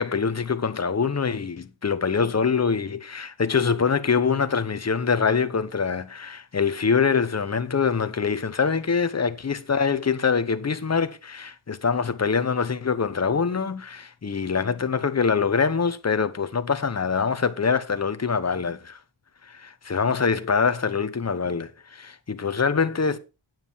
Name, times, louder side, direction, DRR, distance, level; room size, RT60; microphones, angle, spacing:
voice 1, 0.0-19.0 19.4-23.2, left 5 dB, 30° left, 1.0 m, -24 dB
9.1 x 7.5 x 4.6 m
cardioid pair, 75°, 49 cm